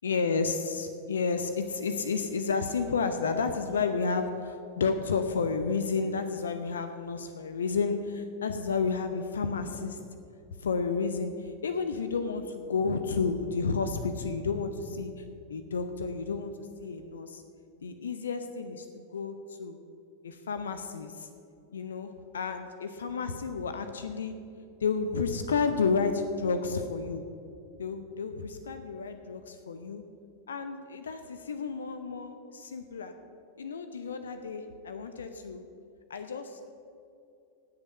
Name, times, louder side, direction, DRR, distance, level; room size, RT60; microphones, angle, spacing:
voice 1, 0.0-10.0 10.6-15.2 15.5-17.4 17.8-19.8 20.2-21.3 21.7-24.3 24.8-27.2 27.8-30.0 30.5-33.1 33.6-35.6 36.1-36.7, left 5 dB, 70° left, 8 dB, 0.7 m, -31 dB
18.0 x 6.7 x 5.5 m, 2.6 s
figure-of-eight pair, 90°, 0 cm